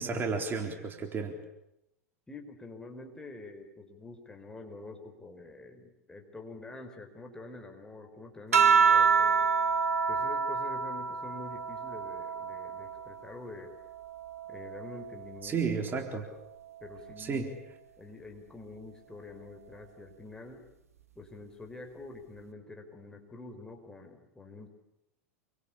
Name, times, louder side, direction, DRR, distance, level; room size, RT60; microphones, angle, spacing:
voice 1, 0.0-1.4 15.4-16.3 17.2-17.5, right 5 dB, 25° right, 4 dB, 4.0 m, -32 dB
voice 2, 2.3-9.5 10.1-13.7 14.5-15.6 16.8-17.4 18.0-20.7 21.1-24.7, left 2 dB, 10° left, 4 dB, 4.9 m, -46 dB
sound 1, 8.5-13.3 13.8-15.5 16.7-17.2, right 5 dB, 75° right, 2.2 m, -28 dB
28.0 x 24.5 x 8.7 m, 0.85 s
figure-of-eight pair, 90°, 8 cm